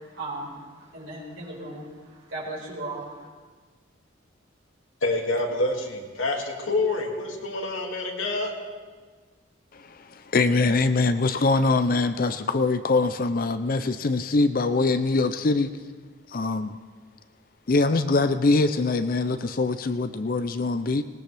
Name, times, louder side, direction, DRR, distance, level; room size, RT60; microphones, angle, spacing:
voice 1, 0.0-1.8 2.3-3.0, right 2 dB, 80° right, -6 dB, 4.8 m, -36 dB
voice 2, 5.0-8.5, left 2 dB, 85° left, 0 dB, 2.4 m, -27 dB
voice 3, 9.7-15.7 16.3-16.8 17.7-21.0, left 3 dB, 45° left, 10 dB, 0.5 m, -23 dB
20.0 x 18.5 x 3.4 m, 1.5 s
head